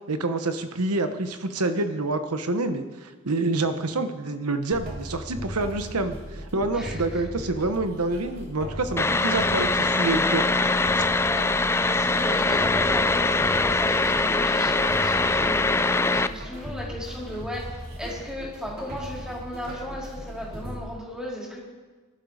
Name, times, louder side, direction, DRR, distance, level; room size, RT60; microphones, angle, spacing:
voice 1, 0.1-10.4 10.9-11.0, right 2 dB, 90° right, 8 dB, 1.1 m, -27 dB
sound 1, 4.7-20.8, equal, 45° right, 3.3 m, -38 dB
voice 2, 6.7-7.2 11.2-21.6, equal, 5° right, -4 dB, 4.3 m, -36 dB
sound 2, 9.0-16.3, left 3 dB, 10° left, 0.4 m, -22 dB
23.5 x 12.0 x 5.0 m, 1.3 s
head